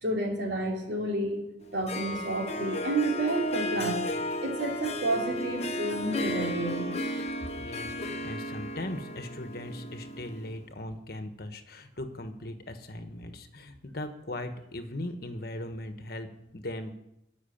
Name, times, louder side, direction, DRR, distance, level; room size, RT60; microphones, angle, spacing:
voice 1, 0.0-1.4 1.7-4.0 4.4-6.9, right 2 dB, 70° right, -1 dB, 3.2 m, -30 dB
Harp, 1.6-10.6, left 1 dB, 35° left, 1.0 m, -34 dB
voice 2, 7.6-16.9, left 1 dB, 55° left, 8 dB, 1.3 m, -39 dB
13.5 x 6.2 x 8.6 m, 0.83 s
head